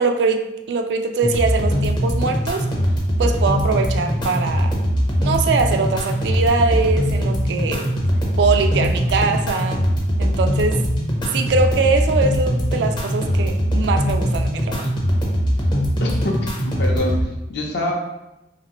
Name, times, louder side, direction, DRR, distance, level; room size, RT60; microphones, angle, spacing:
voice 1, 0.0-2.7 3.2-4.7 5.2-7.9 8.4-9.8 10.2-10.8 11.3-14.9, right 4 dB, 65° right, 7 dB, 0.3 m, -22 dB
sound 1, 1.2-17.2, equal, 25° left, 0.5 m, -21 dB
voice 2, 16.0-17.9, left 1 dB, 65° left, 0 dB, 0.7 m, -26 dB
2.8 x 2.8 x 2.9 m, 0.93 s
head